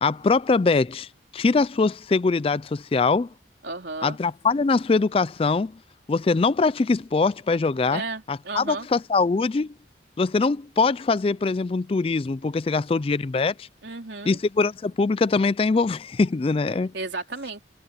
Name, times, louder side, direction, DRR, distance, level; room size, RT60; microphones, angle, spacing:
voice 1, 0.0-3.3 4.0-5.7 6.1-8.0 8.3-9.7 10.2-13.7 14.3-16.9, left 4 dB, 30° left, 0.3 m, -22 dB
voice 2, 3.6-4.2 7.9-8.9 13.8-14.4 16.9-17.6, right 3 dB, 65° right, 3.6 m, -33 dB
head